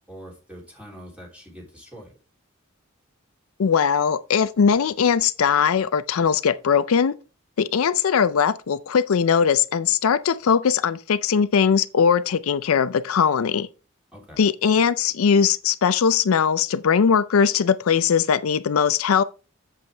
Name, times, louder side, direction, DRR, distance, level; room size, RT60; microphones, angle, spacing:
voice 1, 0.1-2.1 14.1-14.4, equal, 5° right, 3.1 m, -43 dB
voice 2, 3.6-7.1 7.6-13.7 14.4-19.2, left 6 dB, 80° left, 0.5 m, -20 dB
7.7 x 7.7 x 3.4 m
head